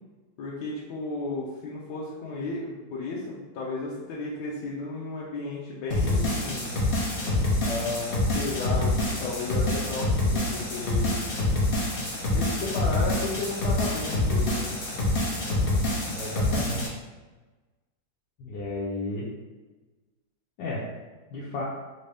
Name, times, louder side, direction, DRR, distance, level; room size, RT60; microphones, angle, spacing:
voice 1, 0.4-6.7 7.6-11.2 12.3-14.7, left 3 dB, 75° left, -6 dB, 1.1 m, -34 dB
sound 1, 5.9-16.9, left 2 dB, 55° left, 0.6 m, -26 dB
voice 2, 16.0-16.9 18.4-19.3 20.6-20.9 21.3-21.6, left 2 dB, 90° left, -7 dB, 1.4 m, -33 dB
3.3 x 2.7 x 3.3 m, 1.2 s
omnidirectional pair, 2.0 m